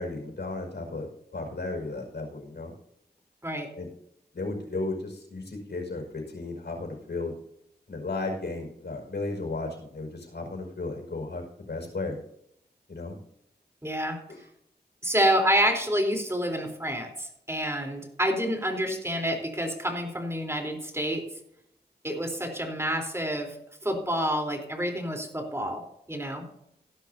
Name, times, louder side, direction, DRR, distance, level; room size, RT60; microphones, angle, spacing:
voice 1, 0.0-2.7 3.8-3.9 4.3-7.3 7.9-12.2 12.9-13.2 14.3-14.4 25.6-25.7, left 2 dB, 80° left, 2 dB, 5.3 m, -34 dB
voice 2, 13.8-14.2 15.0-21.2 22.0-23.6 23.8-25.8 26.1-26.4, equal, 15° right, 3 dB, 3.8 m, -28 dB
17.5 x 12.0 x 2.8 m, 0.75 s
wide cardioid pair, 70°, 17 cm